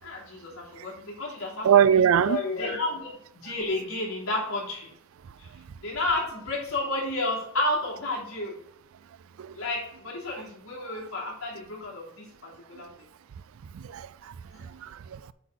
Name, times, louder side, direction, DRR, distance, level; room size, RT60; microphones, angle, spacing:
voice 1, 0.0-1.7 2.0-4.9 5.4-5.5 5.8-8.6 9.5-12.9 14.5-14.6, left 2 dB, 85° left, 3.1 m, -31 dB
voice 2, 1.6-2.4 9.4-9.6 13.7-14.3 14.6-15.2, right 8 dB, 70° right, 0.3 m, -22 dB
8.2 x 3.9 x 6.1 m
head